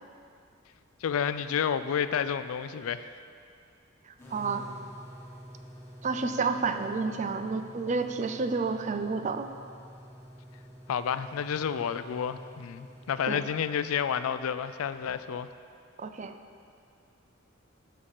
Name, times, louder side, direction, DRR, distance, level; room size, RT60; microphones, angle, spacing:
voice 1, 1.0-3.2 10.9-15.5, left 7 dB, 90° left, 13 dB, 0.4 m, -30 dB
voice 2, 4.1-4.6 6.0-9.5 13.3-13.4 16.0-16.4, right 4 dB, 35° right, 8 dB, 0.4 m, -30 dB
sound 1, 4.2-13.2, equal, 15° left, 1.4 m, -48 dB
10.0 x 5.8 x 4.9 m, 2.4 s
head